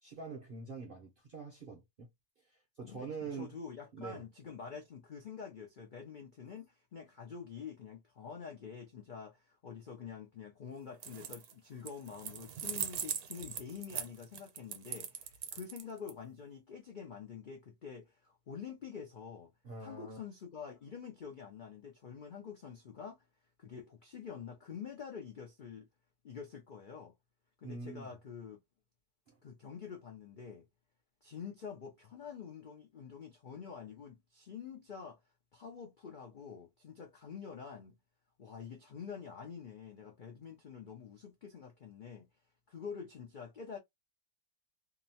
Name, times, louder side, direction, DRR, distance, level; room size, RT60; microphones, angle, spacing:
voice 1, 0.0-2.1 2.5-3.5 3.9-4.2 19.6-20.2 27.6-28.1 29.3-29.4, right 4 dB, 55° right, 0.6 m, -45 dB
voice 2, 2.8-19.5 19.8-23.3 23.6-25.9 26.2-27.1 27.6-28.6 29.4-30.7 31.2-35.2 35.5-38.0 38.4-42.3 42.7-43.8, left 6 dB, 85° left, 0.4 m, -47 dB
sound 1, 10.9-11.5 11.9-16.1, right 9 dB, 75° right, 1.1 m, -40 dB
2.8 x 2.1 x 2.7 m
omnidirectional pair, 1.7 m